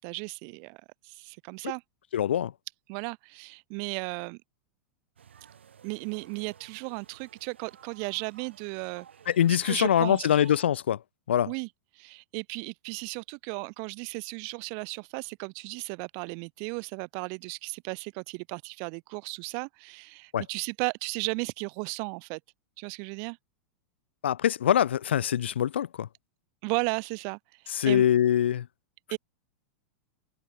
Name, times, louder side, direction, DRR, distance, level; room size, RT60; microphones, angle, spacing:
voice 1, 0.0-1.8 2.9-4.4 5.8-9.1 9.5-10.3 11.5-11.7 12.0-22.4 22.8-23.4 26.6-27.4 27.8-28.0 29.1-29.2, right 40 dB or more, 45° right, 2.3 m, -35 dB
voice 2, 2.1-2.5 9.3-11.0 11.3-11.5 20.3-20.4 24.2-26.1 27.8-28.6, left 10 dB, 70° left, 0.4 m, -23 dB
sound 1, 5.2-10.7, right 8 dB, 70° right, 3.6 m, -54 dB
figure-of-eight pair, 90°, 6 cm